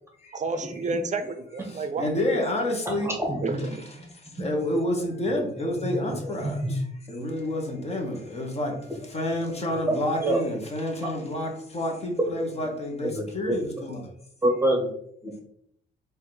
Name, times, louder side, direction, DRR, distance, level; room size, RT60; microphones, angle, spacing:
voice 1, 0.3-2.1 3.4-3.8, right 3 dB, 35° right, 9 dB, 0.6 m, -30 dB
voice 2, 1.7-3.1 4.2-6.8 7.1-14.1, left 1 dB, 30° left, 1 dB, 1.3 m, -29 dB
voice 3, 2.8-3.6 5.8-5.9 6.4-6.7 9.9-10.0 10.2-10.4 11.0-11.1 13.0-13.5 14.4-14.9 15.2-15.4, right 1 dB, 10° right, 0 dB, 1.1 m, -26 dB
4.2 x 2.7 x 3.9 m, 0.70 s
cardioid pair, 90°, 20 cm